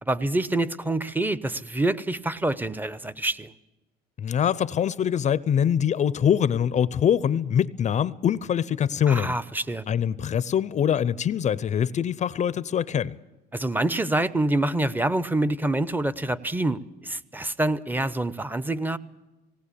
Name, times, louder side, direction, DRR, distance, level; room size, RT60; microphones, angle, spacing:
voice 1, 0.0-3.5 9.1-9.9 13.5-19.0, right 2 dB, 10° right, 0.8 m, -26 dB
voice 2, 4.2-9.4 9.9-13.2, left 8 dB, 45° left, 0.6 m, -24 dB
19.0 x 18.0 x 8.4 m
cardioid pair, 110°, 17 cm